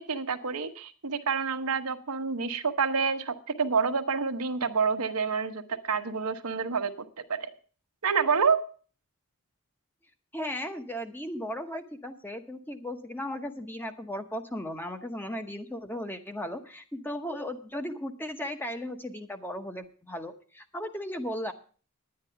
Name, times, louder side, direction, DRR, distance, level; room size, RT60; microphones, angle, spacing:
voice 1, 0.0-6.9 7.3-7.5 8.0-8.6, right 5 dB, 85° right, 7 dB, 1.0 m, -28 dB
voice 2, 10.3-21.5, equal, 10° left, 7 dB, 0.9 m, -36 dB
10.5 x 9.7 x 5.7 m, 0.40 s
head